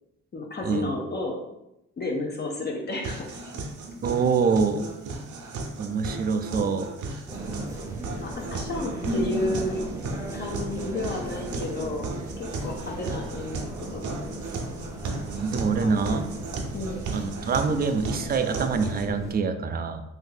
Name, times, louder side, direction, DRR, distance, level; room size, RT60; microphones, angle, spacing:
voice 1, 0.3-1.4 2.0-3.5 8.1-9.8 10.3-12.1 12.4-13.6 13.9-14.3 15.8-16.2 16.7-17.0, left 2 dB, 35° left, 0 dB, 0.6 m, -32 dB
sound 1, 3.0-19.0, right 3 dB, 75° right, 0.7 m, -36 dB
voice 2, 4.0-4.8 5.8-6.9 7.9-8.0 15.4-16.2 17.1-20.0, right 5 dB, 30° right, 8 dB, 0.4 m, -25 dB
sound 2, 7.3-19.3, right 1 dB, 10° right, 0.7 m, -36 dB
2.7 x 2.6 x 3.8 m, 0.88 s
cardioid pair, 90°, 30 cm